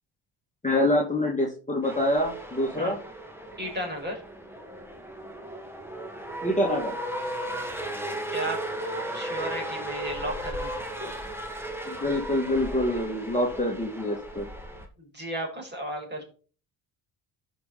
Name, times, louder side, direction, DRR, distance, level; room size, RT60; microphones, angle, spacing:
voice 1, 0.6-3.0 6.4-7.0 11.9-14.5, left 1 dB, 15° left, -2 dB, 2.5 m, -26 dB
sound 1, 1.8-14.9, right 1 dB, 5° right, 2.2 m, -36 dB
voice 2, 3.6-4.2 8.3-8.7 9.1-10.7 11.0-11.1 15.0-16.2, right 1 dB, 20° right, 0 dB, 5.6 m, -34 dB
12.5 x 5.4 x 4.3 m, 0.39 s
hypercardioid pair, 50°, 49 cm